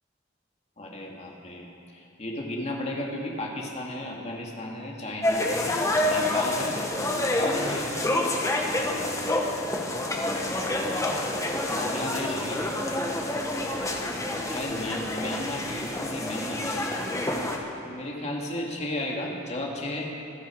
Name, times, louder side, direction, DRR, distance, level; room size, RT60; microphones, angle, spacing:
voice 1, 0.8-6.8 7.1-8.0 8.5-9.4 9.7-11.1 11.7-12.7 14.5-16.9 17.8-20.1, left 1 dB, 35° left, -1 dB, 2.3 m, -35 dB
sound 1, 5.2-17.6, left 1 dB, 15° left, 1.3 m, -28 dB
26.0 x 10.0 x 4.7 m, 2.7 s
head